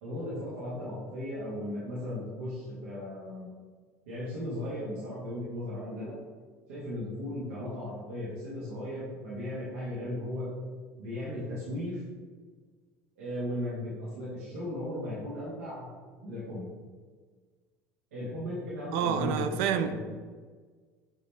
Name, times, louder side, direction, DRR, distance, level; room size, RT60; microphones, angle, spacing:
voice 1, 0.0-3.5 4.1-6.1 6.7-10.5 11.0-12.0 13.2-15.9 16.2-16.7 18.1-20.0, left 1 dB, 90° right, -9 dB, 1.3 m, -36 dB
voice 2, 18.9-20.0, right 8 dB, 75° right, 9 dB, 0.4 m, -28 dB
5.5 x 3.0 x 3.2 m, 1.5 s
supercardioid pair, 90°, 8 cm